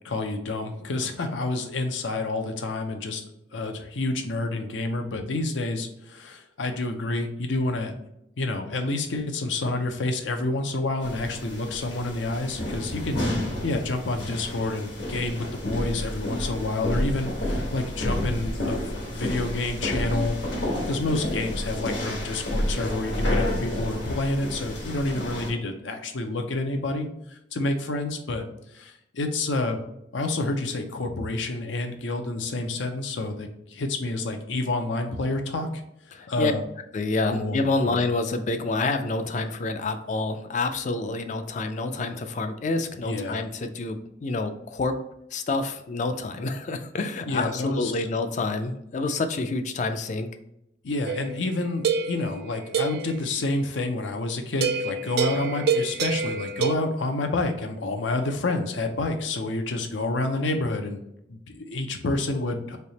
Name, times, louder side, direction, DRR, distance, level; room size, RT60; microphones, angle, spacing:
voice 1, 0.0-3.3 3.5-7.9 8.4-13.2 13.6-18.8 19.1-28.4 28.7-29.8 30.1-35.7 36.3-36.6 37.3-37.6 37.8-38.0 43.0-43.4 47.3-47.9 50.8-61.0 61.3-62.8, left 2 dB, 85° left, 5 dB, 0.6 m, -29 dB
sound 1, 11.0-25.5, left 1 dB, 70° left, 1.2 m, -30 dB
voice 2, 36.2-36.5 36.9-45.0 45.3-50.3, left 3 dB, 40° left, 8 dB, 0.4 m, -28 dB
sound 2, 51.1-53.2 54.6-56.7, right 5 dB, 55° right, 0.3 m, -27 dB
3.4 x 2.8 x 4.0 m, 0.80 s
head